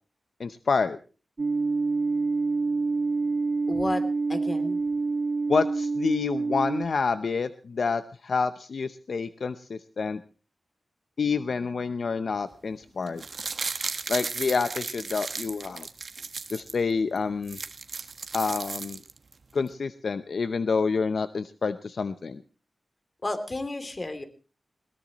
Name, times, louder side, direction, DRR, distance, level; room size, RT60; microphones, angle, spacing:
voice 1, 0.4-1.0 5.5-10.2 11.2-13.2 14.1-15.9 16.5-17.6 18.3-19.0 19.5-22.4, left 5 dB, 70° left, 11 dB, 0.7 m, -28 dB
sound 1, 1.4-6.9, right 3 dB, 45° right, 0.8 m, -27 dB
voice 2, 3.7-4.0 4.3-4.8 23.2-24.2, left 2 dB, 35° left, 9 dB, 2.9 m, -31 dB
sound 2, 13.1-16.8 17.2-17.3 17.4-19.3 19.7-19.8, right 4 dB, 60° right, 1.4 m, -35 dB
21.0 x 18.5 x 3.0 m, 0.35 s
wide cardioid pair, 90°, 0 cm